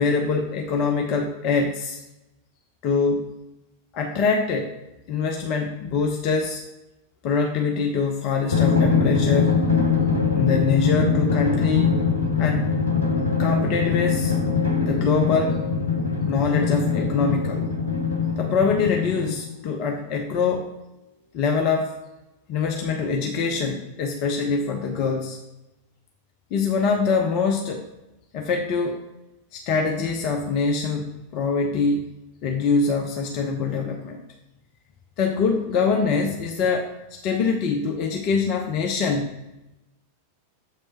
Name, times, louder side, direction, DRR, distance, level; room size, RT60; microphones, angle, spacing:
voice 1, 0.0-2.0 2.8-3.3 3.9-4.8 5.1-6.6 7.2-9.6 10.3-12.0 12.4-12.8 13.4-14.3 14.9-15.6 16.2-17.7 18.4-20.7 21.3-21.9 22.5-25.4 26.5-27.8 28.3-29.0 29.5-32.1 32.4-34.2 35.2-36.9 37.2-39.3, left 5 dB, 40° left, 3 dB, 0.6 m, -24 dB
Drum, 8.5-19.6, left 5 dB, 85° left, 0.7 m, -22 dB
7.4 x 3.2 x 4.4 m, 0.97 s
figure-of-eight pair, 90°, 0 cm